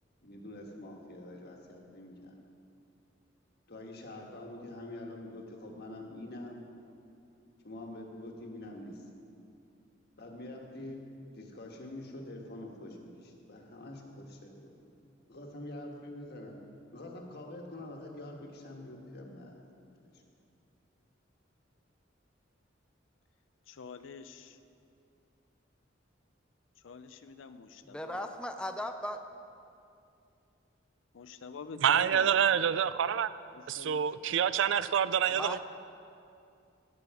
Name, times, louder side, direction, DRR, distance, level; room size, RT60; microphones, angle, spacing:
voice 1, 0.2-2.4 3.7-6.6 7.6-9.2 10.2-11.0 11.3-14.7 15.3-16.6 16.9-19.6 19.9-20.2, left 1 dB, 60° left, 1 dB, 1.4 m, -45 dB
voice 2, 23.7-24.6 26.8-28.3 31.1-32.3 33.5-34.4, left 5 dB, 85° left, 10 dB, 0.5 m, -46 dB
voice 3, 27.8-29.2 35.3-35.6, left 1 dB, 5° left, 6 dB, 0.4 m, -37 dB
voice 4, 31.8-33.3 33.7-35.6, right 8 dB, 70° right, 15 dB, 0.4 m, -27 dB
17.0 x 6.9 x 4.8 m, 2.5 s
head